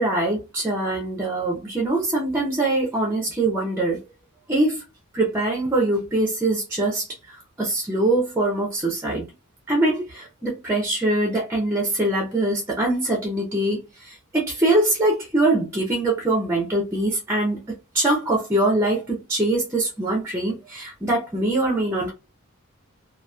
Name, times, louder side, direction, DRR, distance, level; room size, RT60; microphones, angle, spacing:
voice 1, 0.0-4.0 4.5-4.8 5.1-9.2 9.7-22.1, right 2 dB, 10° right, 0.6 m, -23 dB
2.8 x 2.4 x 2.3 m
head